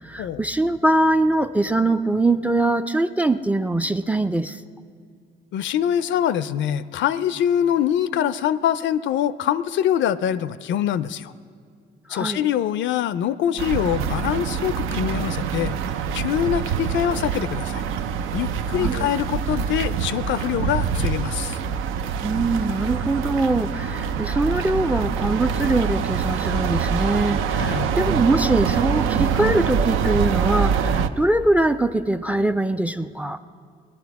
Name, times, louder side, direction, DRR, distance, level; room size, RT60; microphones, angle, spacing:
voice 1, 0.0-4.6 12.1-12.5 18.8-18.9 22.2-33.4, right 2 dB, 5° right, 12 dB, 0.4 m, -22 dB
voice 2, 5.5-11.3 12.1-15.7 16.1-17.8 18.3-21.6 27.6-27.9, left 10 dB, 70° left, 16 dB, 0.4 m, -24 dB
sound 1, 13.6-31.1, right 7 dB, 90° right, 0.5 m, -25 dB
19.0 x 11.5 x 4.7 m, 2.2 s
cardioid pair, 90°, 20 cm